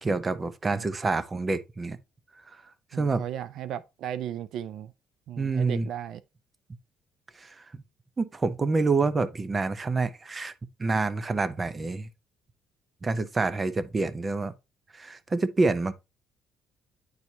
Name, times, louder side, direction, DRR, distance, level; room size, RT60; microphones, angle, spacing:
voice 1, 0.0-2.0 2.9-3.2 5.4-5.9 7.4-7.5 8.2-10.5 10.8-12.1 13.0-14.5 14.9-15.9, right 3 dB, 20° right, 0.6 m, -27 dB
voice 2, 2.9-4.9 5.3-6.2, right 10 dB, 65° right, 0.4 m, -36 dB
9.5 x 4.5 x 2.7 m
cardioid pair, 135°, 0 cm